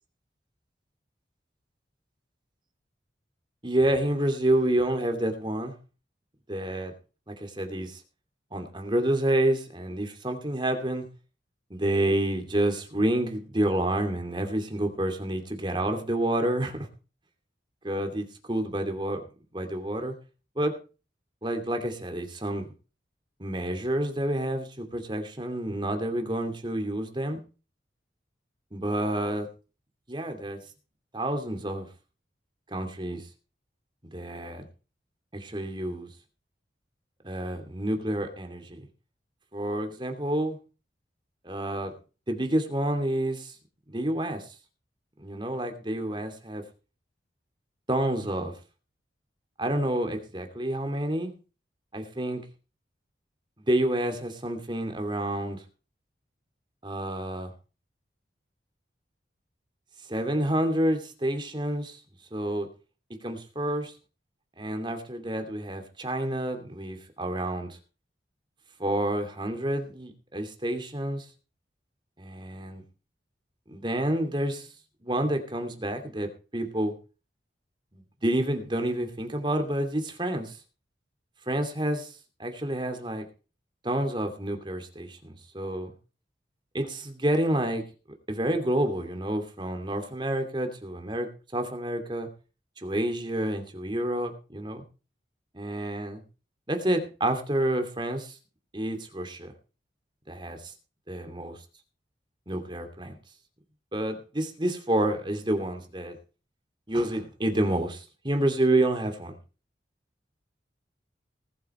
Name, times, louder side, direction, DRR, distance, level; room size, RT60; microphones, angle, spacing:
voice 1, 3.6-5.7 6.5-6.9 7.3-8.0 8.5-11.1 11.7-16.9 17.8-19.2 19.5-20.2 20.6-20.7 21.4-22.7 23.4-27.4 28.7-29.5 30.1-30.6 31.1-31.9 32.7-33.2 34.1-34.6 35.3-36.1 37.2-38.9 39.5-40.6 41.4-41.9 42.3-43.5 43.9-44.4 45.2-46.6 47.9-48.5 49.6-51.3 51.9-52.4 53.6-55.6 56.8-57.5 60.1-62.0 62.3-62.7 63.2-63.9 64.6-67.8 68.8-71.3 72.2-72.8 73.7-74.7 75.0-76.9 77.9-80.6 81.5-82.1 82.4-83.3 83.8-85.9 86.7-87.8 88.3-92.3 92.8-94.8 95.5-96.2 96.7-98.4 98.7-99.5 100.3-100.7 101.1-101.6 102.5-103.2 103.9-106.2 106.9-109.4, right 1 dB, 25° right, 5 dB, 2.6 m, -29 dB
19.0 x 8.8 x 4.4 m, 0.34 s
head